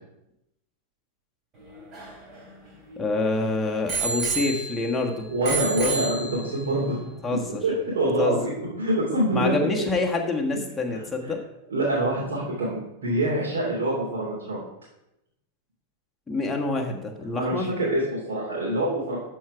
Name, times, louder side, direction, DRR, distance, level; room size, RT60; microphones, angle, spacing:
Bicycle bell, 1.6-3.2 3.9-5.0 5.4-6.7 7.4-7.5, right 3 dB, 30° right, 3.0 m, -31 dB
voice 1, 3.0-5.3 7.2-7.6 8.2-8.4 9.3-11.4 16.3-17.7, left 3 dB, 10° left, 0 dB, 1.4 m, -26 dB
voice 2, 5.3-7.0 7.6-9.5 11.7-14.6 17.3-19.2, right 1 dB, 60° right, -8 dB, 2.9 m, -25 dB
12.5 x 4.6 x 4.8 m, 0.86 s
figure-of-eight pair, 90°, 0 cm